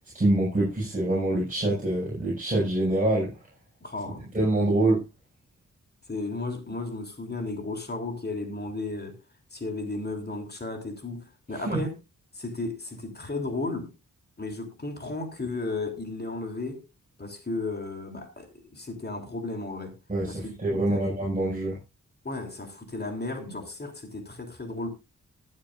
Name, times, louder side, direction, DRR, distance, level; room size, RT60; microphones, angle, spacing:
voice 1, 0.1-3.3 4.3-5.0 11.5-11.8 20.1-21.8, right 1 dB, 25° right, 6.1 m, -25 dB
voice 2, 3.8-4.3 6.1-9.2 9.5-12.0 12.3-13.9 14.4-16.8 17.2-20.0 20.3-21.0 22.2-24.9, left 2 dB, 30° left, 3.2 m, -34 dB
21.0 x 7.5 x 2.5 m
wide cardioid pair, 85°, 31 cm